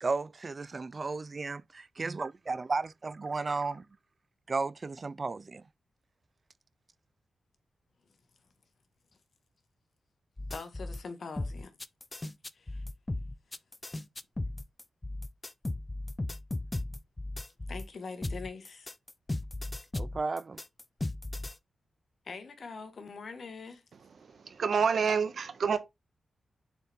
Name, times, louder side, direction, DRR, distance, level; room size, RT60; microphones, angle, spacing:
voice 1, 0.0-3.8 4.5-5.6 20.0-20.6, right 3 dB, 45° right, 0.4 m, -34 dB
sound 1, 10.4-11.0 11.4-17.9 18.2-21.5, left 2 dB, 25° left, 0.6 m, -36 dB
voice 2, 10.5-11.7 12.5-12.8 17.7-18.9 22.2-23.8, left 4 dB, 60° left, 1.6 m, -43 dB
voice 3, 24.4-25.8, right 6 dB, 70° right, 1.1 m, -27 dB
7.0 x 4.3 x 3.6 m
cardioid pair, 60°, 0 cm